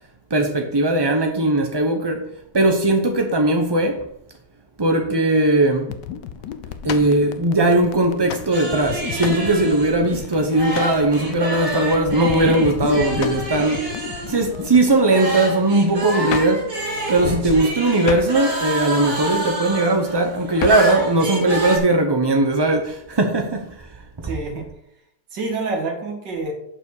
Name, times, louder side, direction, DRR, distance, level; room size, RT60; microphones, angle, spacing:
voice 1, 0.3-2.2 2.5-4.1 4.8-5.9 6.8-14.0 14.3-16.7 17.1-24.3, right 2 dB, 35° right, 0.4 m, -19 dB
sound 1, 5.9-14.9, left 9 dB, 80° left, 1.3 m, -32 dB
sound 2, 6.9-7.2 8.3-8.5 9.2-9.5 10.7-11.0 13.2-13.5 16.3-16.7 18.0-18.4 20.6-21.0, left 9 dB, 65° left, 0.9 m, -29 dB
sound 3, 8.5-21.8, right 1 dB, 60° right, 3.5 m, -29 dB
voice 2, 24.2-24.7 25.3-26.5, right 3 dB, 90° right, 2.4 m, -27 dB
7.2 x 6.1 x 6.4 m
omnidirectional pair, 1.8 m